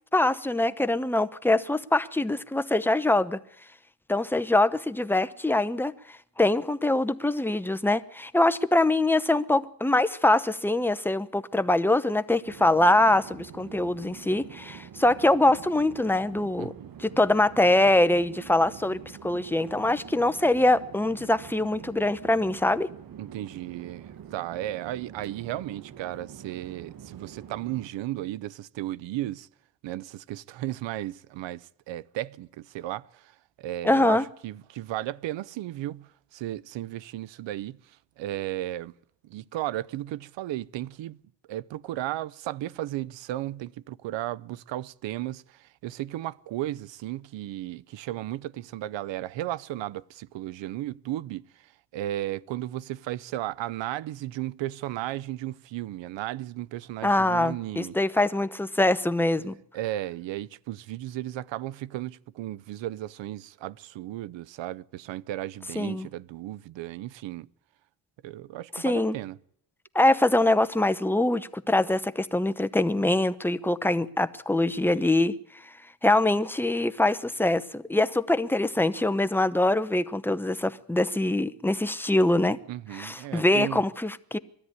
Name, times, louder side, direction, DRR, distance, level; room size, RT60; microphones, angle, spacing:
voice 1, 0.1-3.4 4.1-5.9 6.4-16.7 17.0-22.9 33.8-34.2 57.0-59.5 65.8-66.1 68.7-69.1 69.9-75.3 76.0-82.6 82.9-84.4, left 2 dB, 5° left, 0.8 m, -23 dB
Chatter / Fixed-wing aircraft airplane, 12.4-27.9, right 8 dB, 55° right, 1.4 m, -46 dB
voice 2, 23.2-29.5 29.8-38.9 39.2-41.2 41.5-58.0 59.7-67.5 68.2-69.4 82.7-83.8, right 14 dB, 90° right, 0.7 m, -35 dB
21.0 x 13.5 x 9.6 m
cardioid pair, 105°, 43 cm